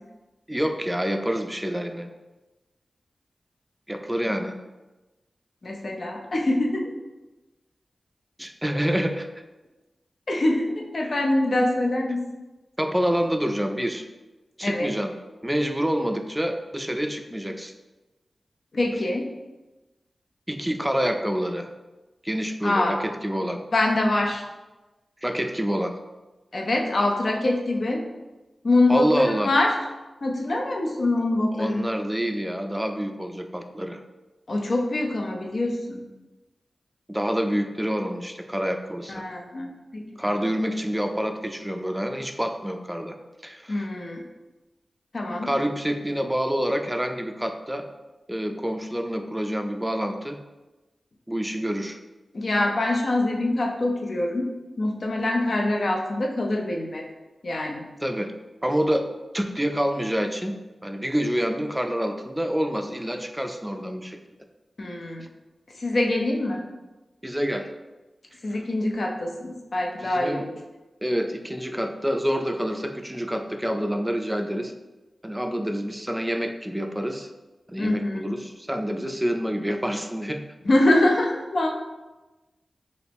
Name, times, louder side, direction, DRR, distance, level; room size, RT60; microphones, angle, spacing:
voice 1, 0.5-2.1 3.9-4.5 8.4-9.3 12.8-14.1 14.6-15.1 15.4-17.7 20.5-21.7 22.2-23.6 25.2-26.0 28.9-29.5 31.5-34.0 37.1-39.2 40.2-43.2 43.4-43.9 45.4-47.9 48.3-50.4 51.3-52.0 58.0-58.3 58.6-59.1 59.3-60.6 60.8-64.2 67.2-67.7 70.0-70.4 71.0-74.7 75.2-77.3 77.7-80.4, equal, 10° right, 5 dB, 0.4 m, -27 dB
voice 2, 5.6-6.9 10.3-12.2 14.6-14.9 18.7-19.3 22.6-22.9 23.7-24.4 26.5-28.0 28.6-29.7 30.2-31.9 34.5-36.0 39.1-40.4 43.7-44.2 45.1-45.5 52.3-54.5 54.8-57.0 57.4-57.8 64.8-65.3 65.8-66.6 68.4-70.6 77.8-78.4 80.7-81.7, left 2 dB, 65° left, 1 dB, 0.5 m, -24 dB
2.8 x 2.5 x 3.4 m, 1.1 s
cardioid pair, 40°, 0 cm